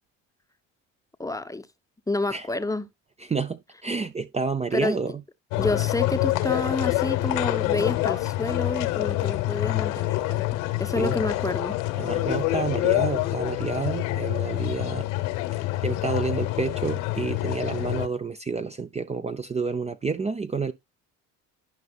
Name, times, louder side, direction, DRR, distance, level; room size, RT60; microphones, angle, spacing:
voice 1, 1.2-1.7 2.1-2.9 4.7-5.1 5.6-10.4 10.8-11.8, left 2 dB, 10° left, 0.8 m, -29 dB
voice 2, 3.3-5.2 11.0-11.2 12.0-15.1 15.8-20.7, right 4 dB, 20° right, 0.6 m, -29 dB
sound 1, 5.5-18.1, left 17 dB, 85° left, 1.4 m, -26 dB
11.5 x 5.3 x 2.4 m
supercardioid pair, 80°, 34 cm